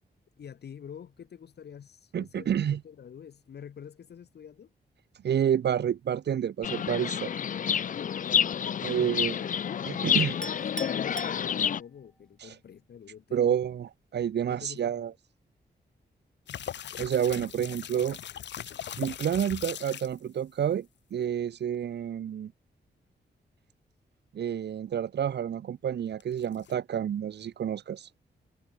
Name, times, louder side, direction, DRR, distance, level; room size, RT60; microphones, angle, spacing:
voice 1, 0.4-4.7 8.6-9.6 9.9-10.6 10.9-13.6 14.5-15.1, left 8 dB, 70° left, 1.3 m, -47 dB
voice 2, 2.1-2.8 5.2-7.3 8.8-9.4 9.9-10.3 13.3-15.1 17.0-18.2 19.0-22.5 24.3-28.1, right 9 dB, 75° right, 0.8 m, -29 dB
Chirp tweet, 6.6-11.8, left 8 dB, 50° left, 0.4 m, -29 dB
Chink clink, 10.4-12.1, equal, 5° left, 2.0 m, -41 dB
sound 1, 16.5-20.2 26.2-26.7, left 9 dB, 90° left, 1.2 m, -39 dB
cardioid pair, 95°, 18 cm